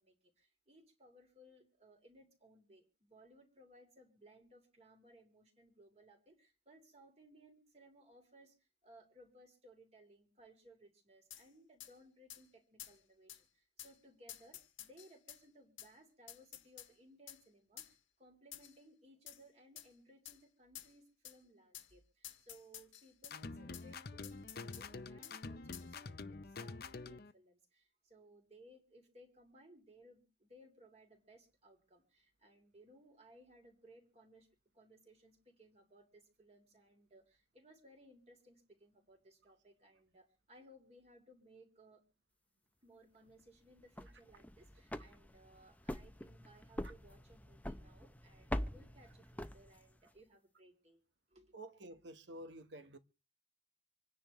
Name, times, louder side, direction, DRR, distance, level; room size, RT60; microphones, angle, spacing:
voice 1, 0.0-26.2 26.4-34.5 34.7-42.0 42.8-51.0 51.3-51.5, right 1 dB, 35° right, 3.1 m, -63 dB
sound 1, 11.3-11.4 11.8-11.9 12.3-12.4 12.8-13.0 13.3-13.4 13.8-13.9 14.3-15.4 15.8-15.9 16.3-16.9 17.3-17.4 17.8-17.9 18.5-18.8 19.3-19.4 19.8-19.9 20.2-20.4 20.7-20.9 21.2-21.4 21.7-21.9 22.2-23.4 23.7-23.9 24.2-24.9 25.2-25.4 25.7-25.9, left 12 dB, 90° left, 1.5 m, -51 dB
sound 2, 23.2-27.3, left 3 dB, 50° left, 0.6 m, -47 dB
sound 3, 43.8-50.1, left 1 dB, 10° left, 0.6 m, -45 dB
voice 2, 51.5-53.0, right 1 dB, 70° right, 1.2 m, -50 dB
26.5 x 10.0 x 3.1 m
head